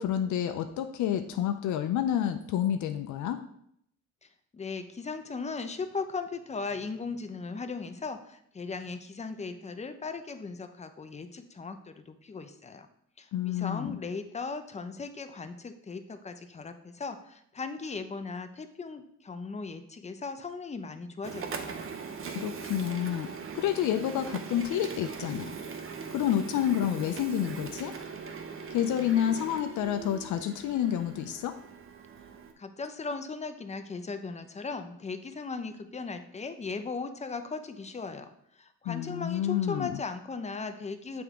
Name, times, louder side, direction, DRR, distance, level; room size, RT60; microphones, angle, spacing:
voice 1, 0.0-3.4 13.3-14.0 22.3-23.3 23.5-25.5 26.1-27.9 28.7-31.5 38.9-40.0, left 10 dB, 75° left, 8 dB, 0.5 m, -29 dB
voice 2, 4.5-12.9 13.2-21.8 32.6-38.3 38.6-41.2, left 4 dB, 20° left, 8 dB, 0.6 m, -38 dB
Printer, 21.2-32.5, right 5 dB, 45° right, 0.8 m, -40 dB
7.8 x 3.4 x 3.6 m, 0.70 s
cardioid pair, 90°, 30 cm